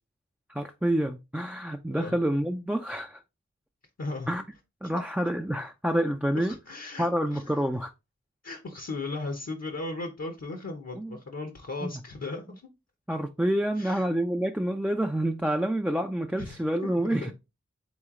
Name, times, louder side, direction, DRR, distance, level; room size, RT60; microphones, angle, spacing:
voice 1, 0.5-3.2 4.3-4.4 4.8-6.5 7.0-7.9 11.0-11.2 11.8-12.0 13.1-17.3, right 1 dB, 5° right, 0.3 m, -28 dB
voice 2, 4.0-4.3 6.4-7.1 7.3-7.4 8.4-12.4 13.8-14.0 16.4-17.3, left 2 dB, 60° left, 0.8 m, -36 dB
3.8 x 3.1 x 3.6 m
wide cardioid pair, 55°, 29 cm